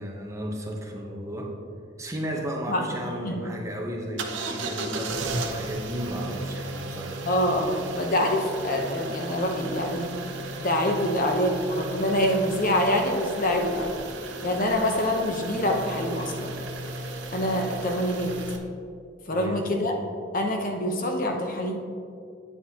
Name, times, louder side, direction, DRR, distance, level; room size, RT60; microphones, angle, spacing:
voice 1, 0.0-1.5 2.0-7.2 19.3-19.7, equal, 15° right, 0 dB, 0.9 m, -34 dB
sound 1, 4.2-18.6, right 2 dB, 80° right, 0.8 m, -35 dB
voice 2, 7.2-10.1 10.6-14.0 14.4-16.6 17.3-18.4 19.3-19.9 20.3-21.8, left 1 dB, 45° left, 2 dB, 0.9 m, -25 dB
9.4 x 8.7 x 2.9 m, 2.4 s
head